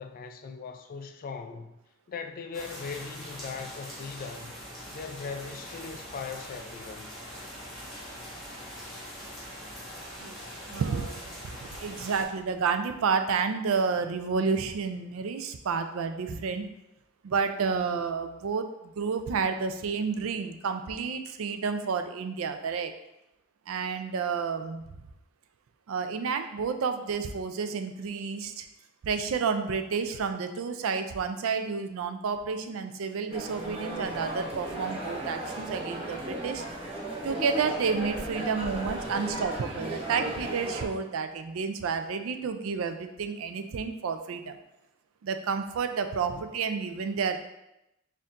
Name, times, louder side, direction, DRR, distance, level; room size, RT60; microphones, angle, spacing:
voice 1, 0.0-1.7 2.1-4.5 4.9-7.1, left 5 dB, 45° left, 0.3 m, -39 dB
sound 1, 2.5-12.2, equal, ahead, 1.5 m, -43 dB
voice 2, 10.7-16.6 17.2-22.9 23.7-24.8 25.9-28.7 29.0-36.6 37.2-44.6 45.2-47.4, right 5 dB, 80° right, 0.4 m, -30 dB
sound 2, 33.3-40.8, right 1 dB, 30° right, 0.8 m, -35 dB
4.3 x 2.6 x 3.6 m
head